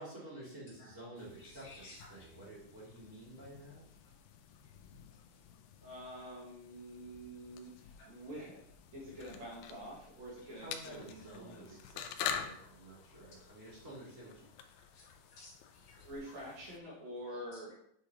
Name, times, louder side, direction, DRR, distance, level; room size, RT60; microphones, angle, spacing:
voice 1, 0.0-3.8 10.5-14.7, right 1 dB, 25° right, -8 dB, 2.6 m, -51 dB
sound 1, 1.2-16.8, left 8 dB, 85° left, 2.4 m, -48 dB
voice 2, 1.4-2.4 4.0-5.4 7.9-8.3 14.7-16.1 16.3-16.5 17.3-17.7, left 2 dB, 60° left, -5 dB, 3.0 m, -59 dB
voice 3, 5.8-8.6 8.9-11.8 16.0-17.7, equal, 60° right, -5 dB, 2.5 m, -47 dB
8.4 x 5.0 x 2.8 m, 0.70 s
omnidirectional pair, 4.1 m